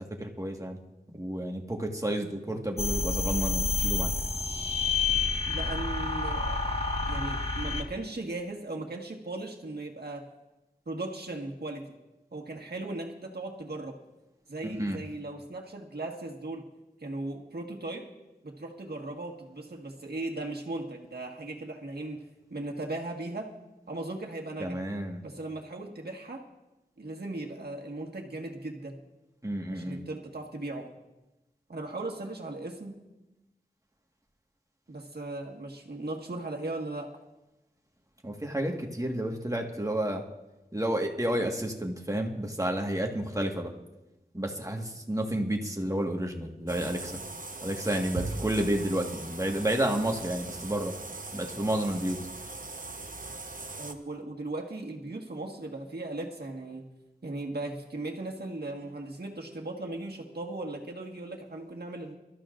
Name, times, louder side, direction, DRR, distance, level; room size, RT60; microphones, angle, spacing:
voice 1, 0.2-0.8 1.1-4.1 14.6-15.0 24.6-25.2 29.4-30.0 38.2-40.2 40.7-43.7 44.3-47.2 47.6-50.9 51.3-52.2, right 1 dB, 20° right, 2 dB, 1.6 m, -30 dB
sound 1, 2.8-7.8, left 3 dB, 35° left, 1.4 m, -29 dB
voice 2, 5.5-6.6 7.1-10.3 10.8-11.9 12.3-14.0 14.5-16.7 17.0-18.1 18.4-22.2 22.5-23.5 23.9-24.8 25.2-26.5 27.0-29.0 29.7-30.9 31.7-33.0 34.9-37.2 53.8-56.9 57.2-62.1, right 2 dB, 75° right, 1 dB, 1.6 m, -37 dB
sound 2, 46.7-53.9, right 3 dB, 55° right, 1.0 m, -40 dB
23.5 x 13.0 x 2.5 m, 1.0 s
wide cardioid pair, 50°, 17 cm